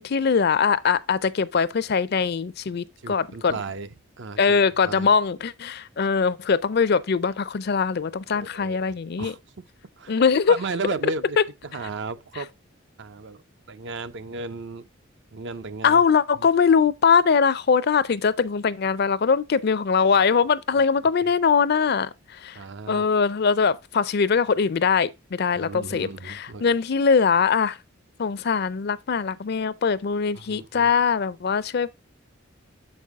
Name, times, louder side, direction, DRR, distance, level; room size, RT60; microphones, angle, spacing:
voice 1, 0.0-3.5 4.4-9.3 10.1-10.6 15.8-22.6 22.9-27.8 28.2-31.9, left 5 dB, 50° left, 0.4 m, -22 dB
voice 2, 3.0-3.9 4.2-5.1 8.3-8.8 9.2-9.4 10.0-10.2 10.5-12.5 13.0-13.4 13.7-14.9 15.3-16.0 16.3-16.5 20.7-20.8 21.2-21.3 22.5-23.0 25.5-26.6 30.3-30.9, right 4 dB, 60° right, 0.6 m, -35 dB
7.1 x 5.4 x 3.5 m
head